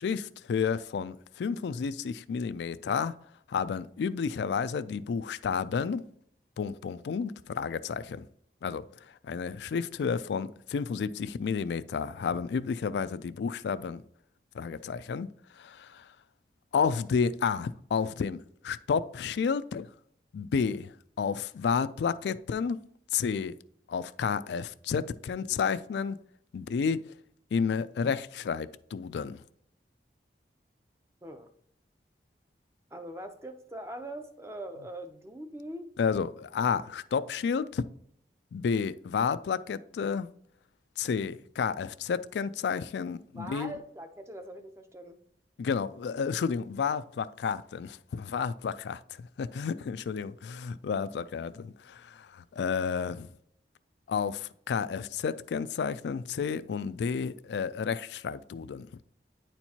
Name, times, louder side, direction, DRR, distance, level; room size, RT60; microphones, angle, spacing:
voice 1, 0.0-3.1 3.5-6.0 6.6-8.3 8.6-8.8 9.2-14.0 14.5-15.3 15.6-16.1 16.7-19.9 20.3-22.8 23.1-23.5 23.9-26.2 26.5-27.1 27.5-29.4 36.0-37.8 38.5-40.3 41.0-43.7 45.6-53.3 54.1-58.9, left 6 dB, 75° left, 0.3 m, -31 dB
voice 2, 32.9-35.9 43.3-45.2, right 1 dB, 15° right, 0.6 m, -42 dB
9.7 x 4.4 x 2.8 m
head